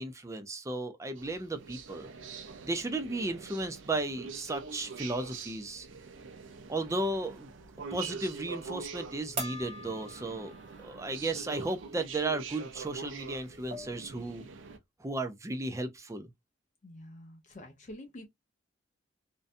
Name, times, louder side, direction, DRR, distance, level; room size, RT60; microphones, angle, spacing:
voice 1, 0.0-2.1 2.6-5.9 6.7-7.5 7.9-10.5 10.8-14.5 15.0-16.3, right 2 dB, 15° right, 0.4 m, -34 dB
sound 1, 1.2-14.8, right 5 dB, 80° right, 0.5 m, -45 dB
sound 2, 9.4-11.0 11.4-11.5 13.0-13.1 13.4-14.1, right 1 dB, 30° right, 0.9 m, -41 dB
voice 2, 16.8-18.3, left 1 dB, 40° left, 0.5 m, -47 dB
2.6 x 2.2 x 2.5 m
head